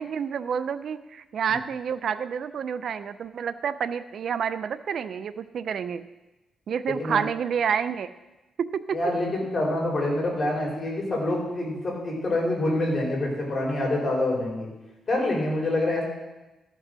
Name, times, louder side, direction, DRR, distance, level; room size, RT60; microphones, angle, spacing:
voice 1, 0.0-6.0 6.7-8.1 8.6-9.0, right 7 dB, 60° right, 13 dB, 0.4 m, -29 dB
voice 2, 8.9-14.7 15.1-16.0, left 1 dB, 35° left, -2 dB, 3.7 m, -26 dB
13.5 x 5.4 x 6.2 m, 1.1 s
cardioid pair, 110°, 0 cm